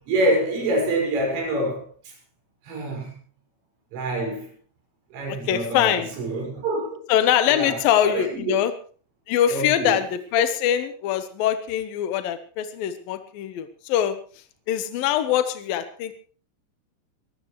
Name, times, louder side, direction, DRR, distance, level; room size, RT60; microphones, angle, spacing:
voice 1, 0.1-2.2 2.6-3.2 3.9-4.5 5.1-7.0 7.5-8.6 9.5-10.0, right 1 dB, 80° right, 8.1 m, -26 dB
voice 2, 5.3-6.1 7.1-8.7 9.3-14.2 14.7-16.2, left 10 dB, 75° left, 2.1 m, -23 dB
22.0 x 15.0 x 3.2 m
omnidirectional pair, 5.7 m